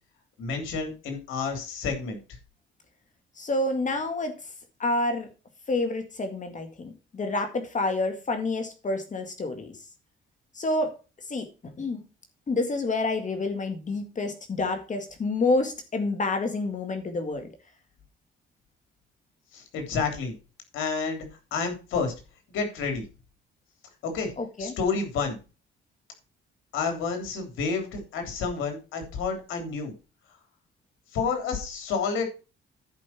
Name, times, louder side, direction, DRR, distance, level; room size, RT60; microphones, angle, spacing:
voice 1, 0.4-2.2 19.5-20.3 20.7-22.1 22.5-23.0 24.0-24.3 24.6-25.4 26.7-29.9 31.1-32.3, left 5 dB, 90° left, 5 dB, 3.3 m, -29 dB
voice 2, 3.4-4.4 4.8-5.3 5.7-9.8 10.5-11.0 11.3-11.5 11.8-12.0 12.5-17.5 24.4-24.7, left 2 dB, 40° left, 6 dB, 1.9 m, -28 dB
10.5 x 5.3 x 5.8 m, 0.31 s
cardioid pair, 90°, 20 cm